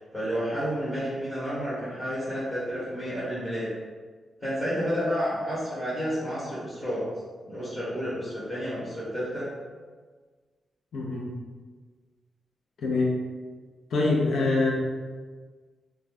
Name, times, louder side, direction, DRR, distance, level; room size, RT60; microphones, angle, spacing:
voice 1, 0.0-3.7 4.4-7.0 7.5-9.5, equal, 20° left, -9 dB, 0.9 m, -30 dB
voice 2, 10.9-11.3 12.8-13.2 13.9-14.7, left 3 dB, 65° left, -2 dB, 0.6 m, -24 dB
2.6 x 2.3 x 3.3 m, 1.5 s
wide cardioid pair, 145°, 0 cm